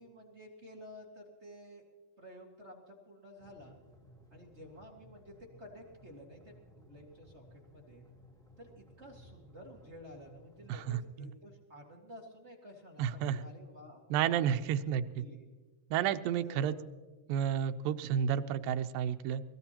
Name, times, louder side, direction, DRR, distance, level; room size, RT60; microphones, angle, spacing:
voice 1, 0.0-1.8 2.2-3.8 4.3-8.1 8.6-14.8 15.1-15.5 16.4-16.9, equal, 30° right, 0 dB, 1.4 m, -52 dB
sound 1, 3.4-11.0, equal, ahead, 3.2 m, -59 dB
voice 2, 10.7-11.3 13.0-13.4 14.1-15.2 15.9-16.7 17.3-19.4, right 9 dB, 90° right, 9 dB, 2.4 m, -31 dB
22.5 x 18.5 x 2.9 m, 1.3 s
omnidirectional pair, 3.9 m